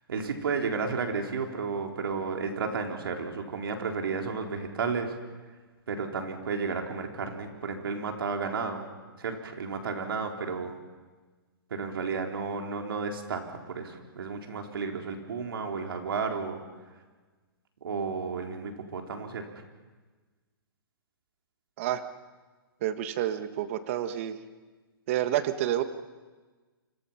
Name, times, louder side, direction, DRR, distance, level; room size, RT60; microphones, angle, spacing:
voice 1, 0.1-5.1 5.9-8.8 9.2-10.7 11.7-16.6 17.8-19.5, right 5 dB, 70° right, 3 dB, 4.2 m, -32 dB
voice 2, 22.8-24.4 25.1-25.8, right 12 dB, 35° right, 10 dB, 1.4 m, -29 dB
29.0 x 25.5 x 5.8 m, 1.3 s
hypercardioid pair, 165°, 12 cm